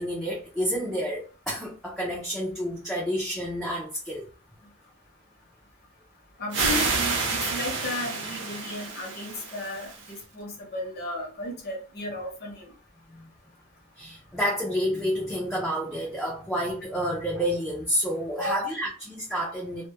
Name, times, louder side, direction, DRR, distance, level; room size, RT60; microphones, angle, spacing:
voice 1, 0.0-4.3 13.1-13.3 14.0-19.9, equal, ahead, 0.4 m, -29 dB
voice 2, 6.4-12.7 18.4-18.7, left 2 dB, 50° left, 0.8 m, -34 dB
sound 1, 6.5-10.2, right 4 dB, 65° right, 0.6 m, -29 dB
2.1 x 2.1 x 2.7 m
head